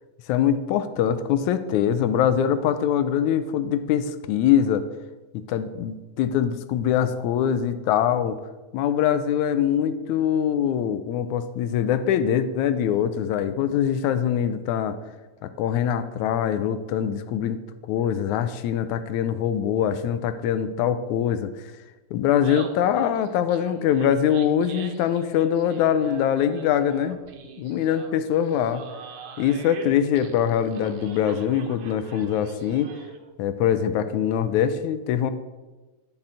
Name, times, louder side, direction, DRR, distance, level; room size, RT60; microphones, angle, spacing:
voice 1, 0.3-4.8 5.3-8.4 8.7-15.0 15.4-17.6 17.9-21.5 22.1-27.2 27.6-28.8 29.4-32.9 33.4-35.3, left 9 dB, 85° left, 11 dB, 2.1 m, -23 dB
Laughter, 22.2-33.3, right 5 dB, 80° right, 2.4 m, -43 dB
11.0 x 5.9 x 7.8 m, 1.2 s
omnidirectional pair, 3.4 m